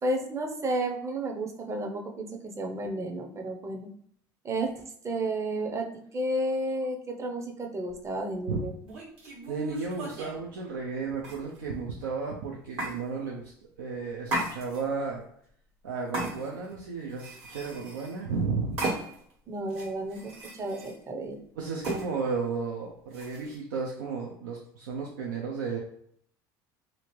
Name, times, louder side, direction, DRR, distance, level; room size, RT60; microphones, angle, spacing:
voice 1, 0.0-3.9 4.4-4.7 5.0-5.9 6.1-8.7 19.5-21.4, right 1 dB, 30° right, 3 dB, 0.6 m, -32 dB
sound 1, 7.9-8.1 8.8-10.4 11.2-11.8 12.8-13.0 14.2-15.0 16.1-16.7 17.1-18.2 18.8-19.3 19.7-21.0 21.8-22.1 23.1-23.5, right 2 dB, 65° right, 1.4 m, -36 dB
voice 2, 9.5-13.5 13.8-15.2 15.8-18.8 21.6-25.8, right 4 dB, 90° right, -3 dB, 0.5 m, -33 dB
2.8 x 2.5 x 3.0 m, 0.65 s
hypercardioid pair, 80°, 11 cm